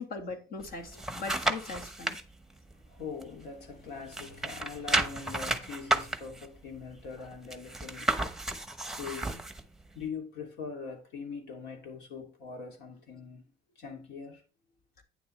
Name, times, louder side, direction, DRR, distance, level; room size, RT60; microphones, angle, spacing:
voice 1, 0.0-2.2, left 4 dB, 60° left, 2.0 m, -40 dB
sound 1, 0.6-2.2 2.7-3.8 4.1-9.6 10.1-10.2, right 2 dB, 5° right, 1.0 m, -32 dB
voice 2, 2.9-8.3 9.0-9.5 9.9-13.5 13.8-14.4, left 5 dB, 80° left, 2.8 m, -42 dB
9.3 x 7.1 x 3.3 m
cardioid pair, 110°, 17 cm